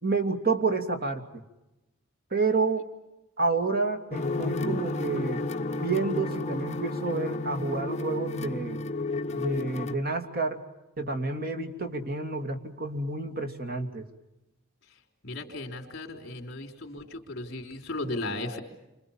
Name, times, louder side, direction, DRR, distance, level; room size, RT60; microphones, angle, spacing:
voice 1, 0.0-1.4 2.3-2.8 3.4-5.4 5.8-8.8 9.3-10.6 11.0-14.1, right 3 dB, 45° right, 5 dB, 2.8 m, -29 dB
sound 1, 4.1-9.9, left 2 dB, 35° left, 1.1 m, -32 dB
voice 2, 15.2-18.6, left 2 dB, 50° left, 1 dB, 4.0 m, -36 dB
29.0 x 26.0 x 7.4 m, 0.96 s
head